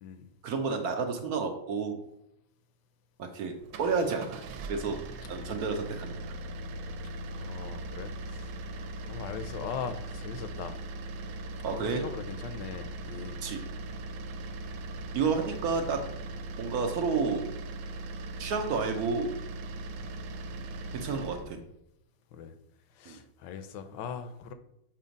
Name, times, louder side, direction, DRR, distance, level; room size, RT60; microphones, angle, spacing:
voice 1, 0.4-2.0 3.2-5.0 5.3-6.1 11.6-12.0 13.4-13.6 15.1-16.1 16.6-17.5 18.4-19.3 20.9-21.6 23.1-23.2, right 5 dB, 70° right, 5 dB, 0.9 m, -30 dB
sound 1, 3.6-21.5, right 2 dB, 85° right, 1.5 m, -39 dB
voice 2, 7.3-8.7 9.1-10.8 11.7-13.4 21.4-21.7 22.3-22.6 22.9-24.5, left 7 dB, 75° left, 10 dB, 1.1 m, -40 dB
6.9 x 3.0 x 5.0 m, 0.81 s
omnidirectional pair, 2.2 m